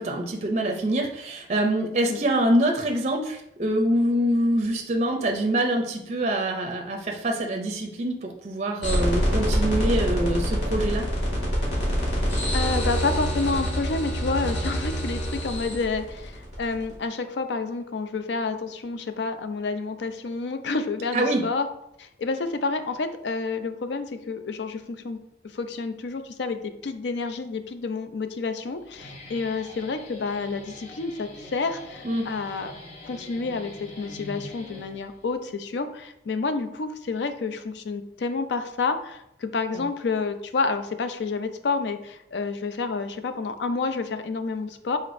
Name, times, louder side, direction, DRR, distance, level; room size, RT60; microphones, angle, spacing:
voice 1, 0.0-11.0 21.1-21.4 32.0-32.3 39.7-39.8, right 1 dB, 40° right, 3 dB, 0.5 m, -25 dB
sound 1, 8.8-16.9, equal, 90° left, 1.7 m, -25 dB
voice 2, 12.5-21.7 22.0-25.2 25.5-32.7 33.0-33.7 34.0-45.0, left 4 dB, 70° left, 9 dB, 0.4 m, -29 dB
Guitar, 28.8-35.3, left 1 dB, 35° left, 0.9 m, -44 dB
4.9 x 4.0 x 2.6 m, 0.79 s
head